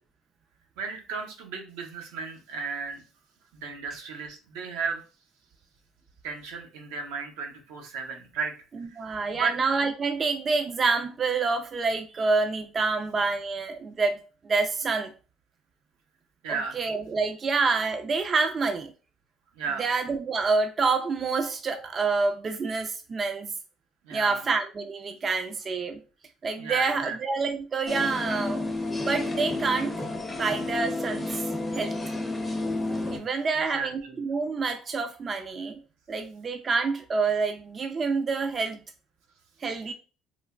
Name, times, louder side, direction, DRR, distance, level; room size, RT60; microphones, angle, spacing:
voice 1, 0.8-3.0 3.5-5.0 6.2-8.5 8.9-9.5 16.4-16.9 19.6-19.9 24.0-24.4 26.6-27.2 33.5-34.2, right 5 dB, 85° right, 0.6 m, -34 dB
voice 2, 9.0-14.2 14.4-15.1 16.5-18.9 19.8-23.5 24.1-26.0 26.4-28.8 29.1-30.0 30.3-31.5 31.7-31.9 33.1-35.8 36.1-38.8 39.6-39.9, right 4 dB, 40° right, 0.3 m, -27 dB
sound 1, 27.9-33.2, left 2 dB, 15° left, 0.5 m, -31 dB
3.1 x 2.1 x 2.3 m
supercardioid pair, 85°, 0 cm